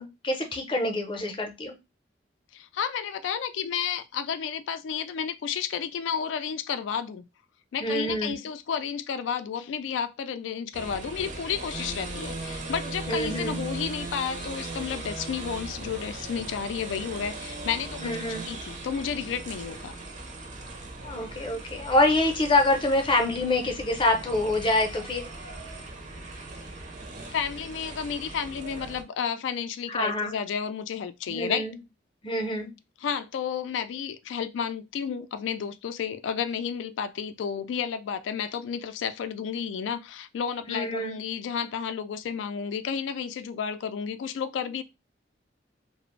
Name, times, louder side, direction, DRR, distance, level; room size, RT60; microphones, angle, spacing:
voice 1, 0.0-1.8 7.8-8.4 13.1-13.6 18.0-18.5 21.0-25.3 29.9-30.4 31.3-31.8 32.2-32.7 40.7-41.2, left 2 dB, 30° left, 0.6 m, -26 dB
voice 2, 2.5-7.3 7.7-18.2 18.5-20.0 27.3-31.7 33.0-44.8, left 7 dB, 75° left, 0.3 m, -32 dB
sound 1, 10.7-29.0, right 2 dB, 40° right, 0.6 m, -38 dB
2.4 x 2.0 x 3.0 m
head